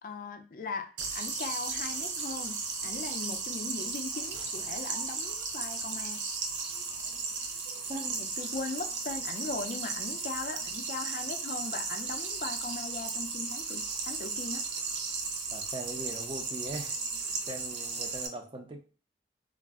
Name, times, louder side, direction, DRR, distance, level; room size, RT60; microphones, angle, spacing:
voice 1, 0.0-6.2 8.2-14.7, left 3 dB, 50° left, 7 dB, 0.4 m, -39 dB
sound 1, 1.0-18.3, right 4 dB, 85° right, 0.5 m, -35 dB
voice 2, 7.9-8.3 15.5-16.9 17.5-18.8, right 2 dB, 30° right, 4 dB, 0.4 m, -40 dB
2.4 x 2.0 x 3.4 m, 0.37 s
head